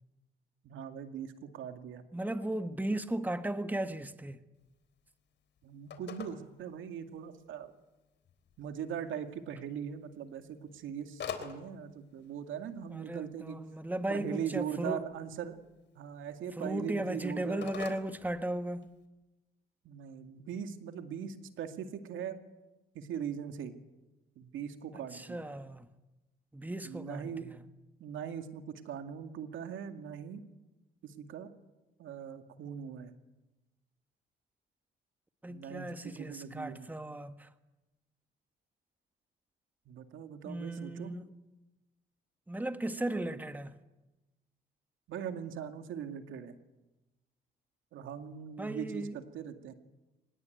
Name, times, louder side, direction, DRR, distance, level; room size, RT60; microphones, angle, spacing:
voice 1, 0.6-2.0 5.6-7.7 8.6-13.6 14.1-15.6 16.0-17.7 19.8-22.4 22.9-23.7 24.4-25.4 26.8-27.5 28.0-30.4 31.0-31.5 32.0-33.1 35.5-36.9 39.9-41.1 45.1-46.6 47.9-49.7, right 8 dB, 80° right, 2.3 m, -40 dB
voice 2, 2.1-4.4 12.9-15.0 16.6-18.9 25.1-25.9 26.5-27.6 35.4-37.5 40.4-41.3 42.5-43.8 48.6-49.2, right 1 dB, 10° right, 1.5 m, -36 dB
Telephone, 4.5-19.0, left 7 dB, 60° left, 3.8 m, -50 dB
24.5 x 20.0 x 9.3 m
cardioid pair, 90°, 20 cm